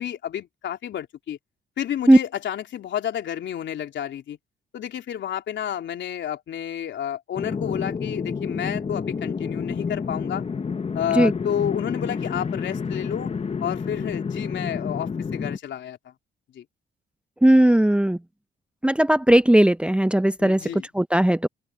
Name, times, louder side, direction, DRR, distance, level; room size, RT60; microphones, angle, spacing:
voice 1, 0.0-1.4 1.8-4.4 4.7-10.4 10.9-13.3 13.6-16.1 16.5-16.6 20.4-20.9, left 10 dB, 70° left, 3.4 m, -30 dB
sound 1, 7.3-15.6, left 5 dB, 30° left, 1.1 m, -29 dB
voice 2, 17.4-18.2 18.8-21.5, right 1 dB, 5° right, 0.7 m, -17 dB
open air
cardioid pair, 90°, 20 cm